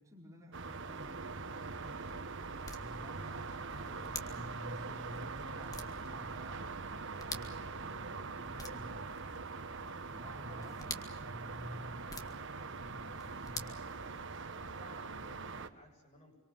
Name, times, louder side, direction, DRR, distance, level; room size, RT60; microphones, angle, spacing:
voice 1, 0.0-2.0 2.8-6.8 7.2-9.3 10.1-12.3 12.6-13.7, equal, 15° right, -3 dB, 4.8 m, -51 dB
sound 1, 0.5-15.7, right 4 dB, 55° right, 1.5 m, -43 dB
sound 2, 1.5-14.6, left 3 dB, 15° left, 2.0 m, -51 dB
sound 3, 1.8-9.4, left 2 dB, 85° left, 1.6 m, -58 dB
voice 2, 14.5-16.4, left 1 dB, 35° left, 0 dB, 7.8 m, -60 dB
26.5 x 24.5 x 7.3 m, 0.92 s
head